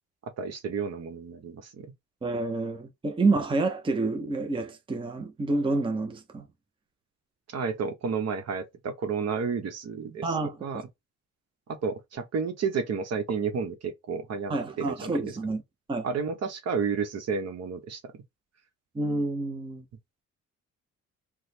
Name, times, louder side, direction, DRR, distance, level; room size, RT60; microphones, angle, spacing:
voice 1, 0.4-1.9 7.5-10.3 10.6-10.8 11.7-15.2 16.0-18.0, right 5 dB, 60° right, 1.0 m, -31 dB
voice 2, 2.2-6.5 10.2-10.8 14.5-15.6 15.9-16.1 18.9-19.8, right 3 dB, 15° right, 0.6 m, -28 dB
3.1 x 2.2 x 4.2 m
cardioid pair, 90°, 30 cm